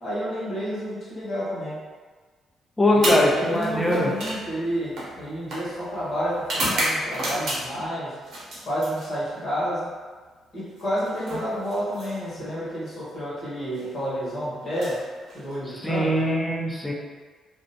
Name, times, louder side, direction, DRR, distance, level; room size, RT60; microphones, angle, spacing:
voice 1, 0.0-1.8 3.0-8.2 8.6-9.9 10.5-15.1 15.3-16.1, equal, 60° left, -8 dB, 1.1 m, -30 dB
voice 2, 2.8-4.1 15.7-16.9, left 1 dB, 15° left, -2 dB, 0.5 m, -22 dB
sound 1, 2.9-7.9 8.2-9.5 10.7-12.5 13.6-13.9 14.6-15.8, right 1 dB, 70° right, 0.9 m, -32 dB
2.4 x 2.1 x 2.7 m, 1.4 s
supercardioid pair, 65°, 0 cm